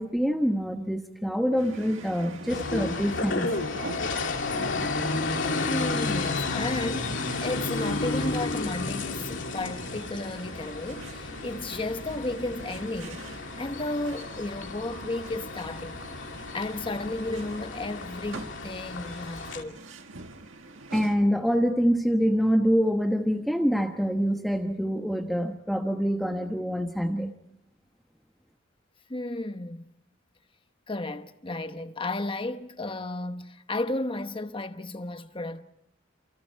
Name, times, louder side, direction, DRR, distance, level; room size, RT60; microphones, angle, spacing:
voice 1, 0.0-3.5 20.9-27.3, equal, ahead, 1.2 m, -25 dB
sound 1, 1.6-21.2, right 2 dB, 75° right, 1.9 m, -44 dB
sound 2, 2.5-19.6, left 3 dB, 65° left, 2.7 m, -32 dB
voice 2, 5.5-19.8 29.1-29.9 30.9-35.6, left 2 dB, 25° left, 1.1 m, -33 dB
29.5 x 28.5 x 4.6 m
head